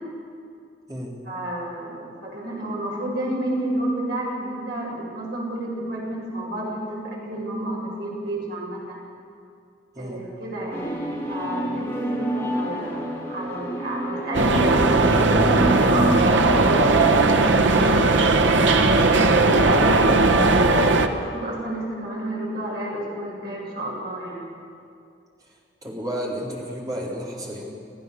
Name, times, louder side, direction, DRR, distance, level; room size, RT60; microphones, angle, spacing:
voice 1, 1.3-9.0 10.0-19.8 20.9-24.4, right 1 dB, 60° right, -4 dB, 7.7 m, -31 dB
sound 1, 10.7-17.5, right 1 dB, 10° left, 3.5 m, -29 dB
sound 2, 14.3-21.1, right 3 dB, 85° right, 1.2 m, -18 dB
voice 2, 25.8-27.7, equal, 20° right, -4 dB, 3.9 m, -32 dB
27.5 x 15.5 x 6.9 m, 2.4 s
head